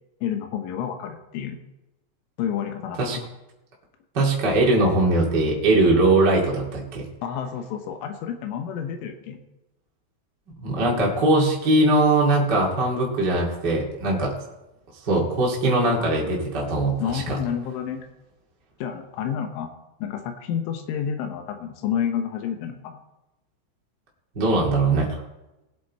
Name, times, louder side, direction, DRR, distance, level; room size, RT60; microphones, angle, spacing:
voice 1, 0.2-1.6 2.4-3.3 7.2-9.4 17.0-18.1 18.8-19.7 20.0-23.0, left 8 dB, 90° left, 6 dB, 3.7 m, -29 dB
voice 2, 4.1-7.1 10.6-14.3 15.0-17.2 24.4-25.2, right 2 dB, 35° right, -3 dB, 1.9 m, -21 dB
19.5 x 8.4 x 4.2 m, 0.97 s
omnidirectional pair, 5.4 m